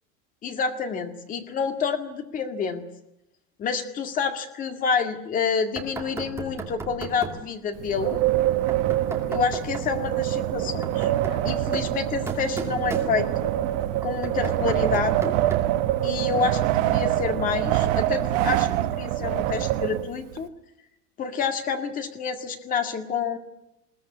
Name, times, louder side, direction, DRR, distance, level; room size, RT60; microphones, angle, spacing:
voice 1, 0.4-2.8 3.6-8.2 9.3-13.5 14.0-15.4 16.0-20.5 21.2-23.4, left 5 dB, 25° left, 7 dB, 2.0 m, -28 dB
Knock, 5.8-7.5 8.7-10.0 10.6-13.5 14.0-15.8, right 3 dB, 10° right, 2.5 m, -36 dB
Wind, 7.8-20.4, right 14 dB, 55° right, 1.3 m, -25 dB
21.5 x 18.5 x 9.6 m, 0.87 s
cardioid pair, 180°, 32 cm